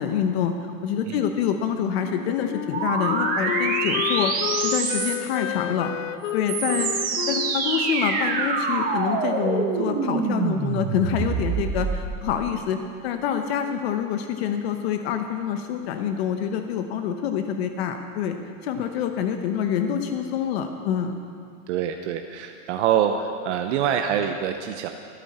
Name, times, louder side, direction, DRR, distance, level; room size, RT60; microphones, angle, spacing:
voice 1, 0.0-5.9 6.3-18.4 18.6-21.1, left 8 dB, 50° left, 6 dB, 0.9 m, -26 dB
Wind instrument woodwind instrument, 2.0-9.5, left 14 dB, 65° left, 0.5 m, -31 dB
sound 1, 2.7-5.4 6.2-12.2, right 5 dB, 20° right, 1.1 m, -26 dB
voice 2, 21.7-24.9, right 9 dB, 60° right, 5 dB, 0.8 m, -25 dB
25.0 x 8.5 x 4.3 m, 2.3 s
supercardioid pair, 160°, 40 cm